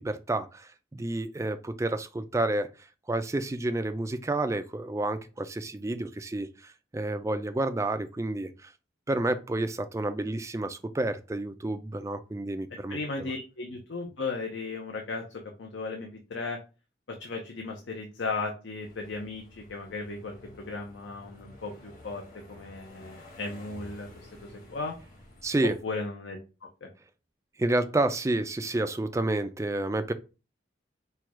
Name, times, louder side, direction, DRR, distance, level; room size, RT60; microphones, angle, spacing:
voice 1, 0.0-2.7 3.1-8.7 9.1-13.3 25.4-25.7 27.6-30.1, right 2 dB, 15° right, 0.3 m, -30 dB
voice 2, 12.9-16.6 17.1-22.2 22.5-24.9 25.8-26.4 26.8-26.9, left 3 dB, 75° left, 0.7 m, -36 dB
sound 1, 18.8-25.8, left 1 dB, 45° left, 1.3 m, -51 dB
4.5 x 2.3 x 4.7 m
head